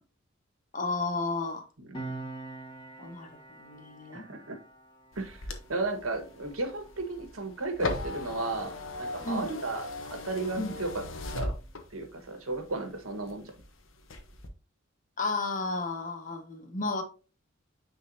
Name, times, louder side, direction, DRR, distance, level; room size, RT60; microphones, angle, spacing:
voice 1, 0.7-1.7 3.0-3.3 3.6-4.2 9.2-9.5 10.6-10.7 15.2-17.0, left 3 dB, 40° left, 1.1 m, -32 dB
Piano, 1.9-9.0 9.3-9.5, right 2 dB, 25° left, 1.8 m, -46 dB
voice 2, 4.1-4.6 5.1-8.7 9.0-9.8 10.1-11.0 11.3-11.5 11.9-13.5, right 2 dB, 85° right, 1.4 m, -34 dB
sound 1, 5.1-12.2 12.7-13.6 14.0-14.5, left 2 dB, 65° left, 1.0 m, -37 dB
9.4 x 3.8 x 2.7 m
head